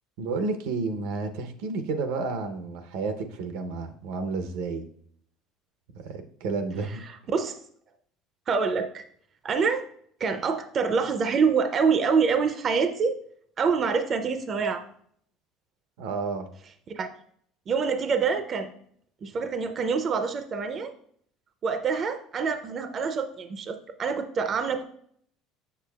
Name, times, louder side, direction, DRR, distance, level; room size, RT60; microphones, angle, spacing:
voice 1, 0.2-4.8 5.9-7.0 16.0-16.5, right 4 dB, 85° right, 7 dB, 0.7 m, -31 dB
voice 2, 7.0-7.6 8.5-9.0 9.4-9.8 10.2-13.2 13.6-14.8 16.9-17.1 17.7-18.7 19.2-20.9 21.6-24.8, right 5 dB, 30° right, 8 dB, 0.4 m, -26 dB
6.9 x 6.7 x 2.3 m, 0.64 s
cardioid pair, 145°, 0 cm